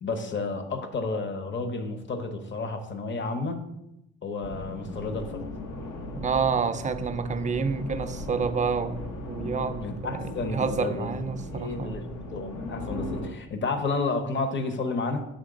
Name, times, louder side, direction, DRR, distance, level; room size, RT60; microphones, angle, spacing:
voice 1, 0.0-3.7 4.2-5.5 9.8-11.1 11.5-12.0 12.3-15.3, left 3 dB, 40° left, 0.8 m, -31 dB
sound 1, 4.4-13.3, left 1 dB, 80° left, 1.0 m, -38 dB
voice 2, 6.2-12.0, right 5 dB, 25° right, 0.4 m, -29 dB
6.6 x 3.2 x 5.0 m
cardioid pair, 90°, 30 cm